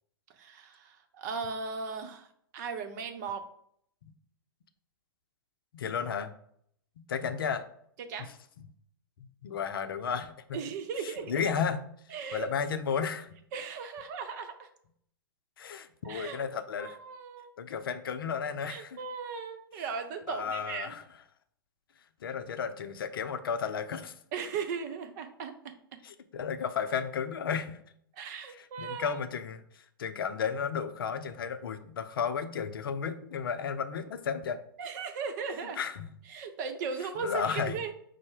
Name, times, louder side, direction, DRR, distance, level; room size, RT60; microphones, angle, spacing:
voice 1, 0.4-2.3 2.5-3.4 8.0-8.3 10.5-11.4 12.1-12.5 13.5-14.7 16.0-16.5 16.8-17.5 18.6-20.9 24.3-26.0 28.2-29.2 34.8-35.8 36.3-37.9, right 5 dB, 50° right, 7 dB, 0.7 m, -37 dB
voice 2, 5.7-6.3 7.1-7.7 9.2-10.3 11.0-11.9 12.3-13.3 15.6-17.0 17.6-19.0 20.3-21.0 22.2-24.2 26.0-27.8 28.5-34.6 35.8-36.1 37.2-37.8, left 6 dB, 70° left, 9 dB, 0.5 m, -33 dB
5.3 x 2.1 x 4.7 m, 0.67 s
hypercardioid pair, 110°, 12 cm